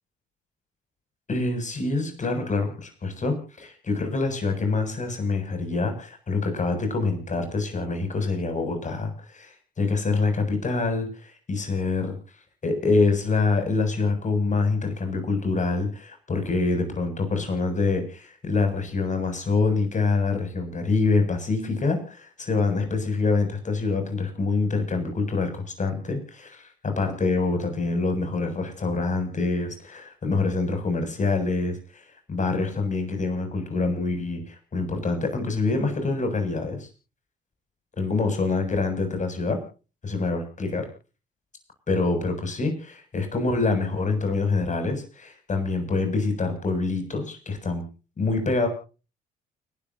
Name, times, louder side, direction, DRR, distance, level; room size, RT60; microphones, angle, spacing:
voice 1, 1.3-12.2 12.6-36.9 38.0-39.6 40.0-40.9 41.9-47.8 48.2-48.7, left 3 dB, 40° left, 6 dB, 7.6 m, -26 dB
29.5 x 12.0 x 2.8 m, 0.35 s
hypercardioid pair, 60°, 19 cm